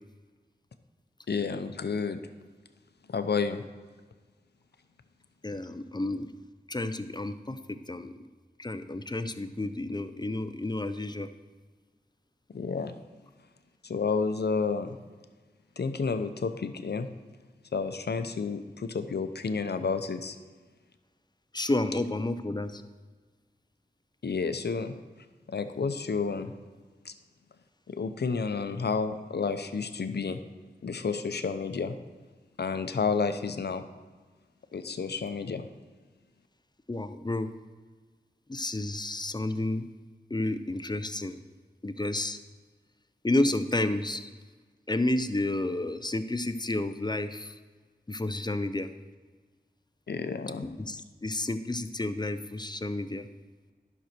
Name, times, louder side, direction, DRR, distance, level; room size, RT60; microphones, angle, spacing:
voice 1, 1.3-2.2 3.1-3.6 12.5-12.9 13.8-15.0 15.8-17.1 17.7-20.4 24.2-24.9 25.5-26.5 27.0-27.1 27.9-30.4 30.8-32.0 32.6-33.8 34.7-35.7 50.1-50.7, left 5 dB, 80° left, 9 dB, 0.6 m, -30 dB
voice 2, 5.4-6.3 6.7-8.1 8.6-11.3 21.5-22.8 36.9-37.5 38.5-39.8 40.3-41.4 41.8-42.4 43.2-44.3 44.9-47.5 48.1-48.9 50.6-53.3, left 2 dB, 25° left, 10 dB, 0.6 m, -31 dB
11.0 x 6.3 x 4.4 m, 1.4 s
cardioid pair, 40°, 17 cm